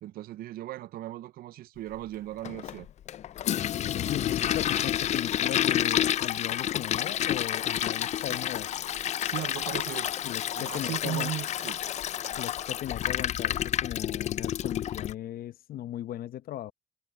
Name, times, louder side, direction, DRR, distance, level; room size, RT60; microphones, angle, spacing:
voice 1, 0.0-2.9 8.2-8.4 9.2-10.1 10.6-11.8, right 14 dB, 60° right, 0.5 m, -37 dB
Toilet flush, 2.4-15.1, left 11 dB, 45° left, 0.4 m, -29 dB
voice 2, 3.9-8.7 10.2-11.3 12.4-16.7, left 12 dB, 60° left, 0.8 m, -37 dB
cardioid pair, 110°, 17 cm